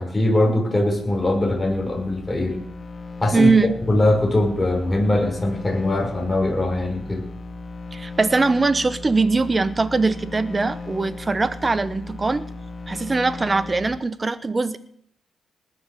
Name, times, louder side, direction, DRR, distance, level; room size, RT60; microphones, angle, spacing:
voice 1, 0.0-2.6 3.2-3.5 3.9-7.2, left 1 dB, 15° left, 0 dB, 5.6 m, -21 dB
sound 1, 0.5-14.0, left 3 dB, 30° left, 2.8 m, -37 dB
voice 2, 3.3-3.7 7.9-12.5 12.9-14.8, right 3 dB, 25° right, 14 dB, 1.0 m, -21 dB
19.5 x 7.0 x 7.0 m, 0.68 s
cardioid pair, 90°, 0 cm